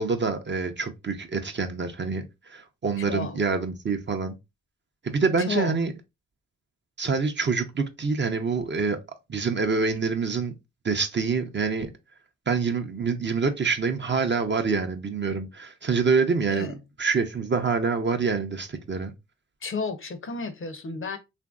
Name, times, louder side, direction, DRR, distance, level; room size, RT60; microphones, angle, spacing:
voice 1, 0.0-4.3 5.0-5.9 7.0-9.0 9.3-10.5 10.8-11.9 12.5-16.7 17.0-19.1, right 4 dB, 35° right, 0.6 m, -26 dB
voice 2, 3.0-3.4 5.4-5.8 16.5-16.8 19.6-21.2, left 4 dB, 40° left, 0.6 m, -32 dB
2.9 x 2.5 x 2.3 m
cardioid pair, 50°, 32 cm